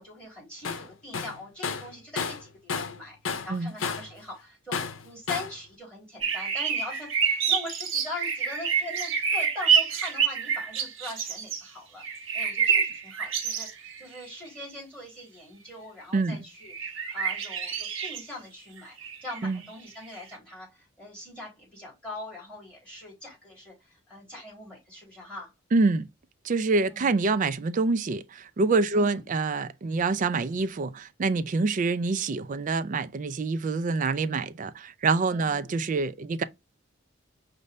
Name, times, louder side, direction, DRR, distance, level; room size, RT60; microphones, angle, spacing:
voice 1, 0.0-3.2 3.4-12.0 12.3-16.7 17.1-25.5 26.7-27.2 28.9-29.1 35.3-35.7, left 2 dB, 5° left, 3.3 m, -41 dB
Tools, 0.6-0.9 1.1-3.0 3.2-4.2 4.7-5.6, left 5 dB, 85° left, 0.7 m, -32 dB
sound 1, 6.2-11.6 12.0-14.0 14.2-14.3 16.6-18.2 18.8-19.5 20.0-20.2, right 7 dB, 90° right, 1.1 m, -27 dB
voice 2, 16.1-16.4 19.4-19.6 25.7-26.0 26.4-36.4, right 3 dB, 40° right, 0.4 m, -26 dB
5.3 x 2.6 x 3.2 m
head